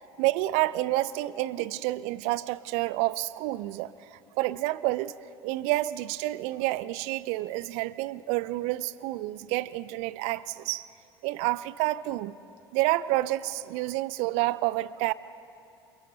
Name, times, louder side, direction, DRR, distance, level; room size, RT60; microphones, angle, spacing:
voice 1, 0.2-5.2 5.4-10.9 11.2-12.3 12.7-15.1, right 17 dB, 60° right, 19 dB, 0.5 m, -29 dB
29.5 x 22.5 x 4.0 m, 2.7 s
figure-of-eight pair, 60°, 13 cm